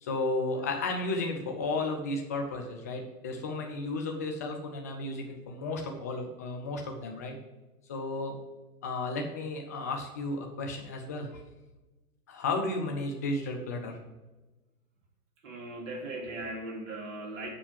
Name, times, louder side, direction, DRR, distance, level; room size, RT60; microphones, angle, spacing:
voice 1, 0.0-7.4 7.9-8.3 8.8-11.4 12.3-14.0, left 2 dB, 10° left, 2 dB, 0.4 m, -33 dB
voice 2, 15.4-17.5, right 2 dB, 55° right, 1 dB, 2.8 m, -38 dB
7.4 x 5.5 x 7.3 m, 1.1 s
hypercardioid pair, 135°, 47 cm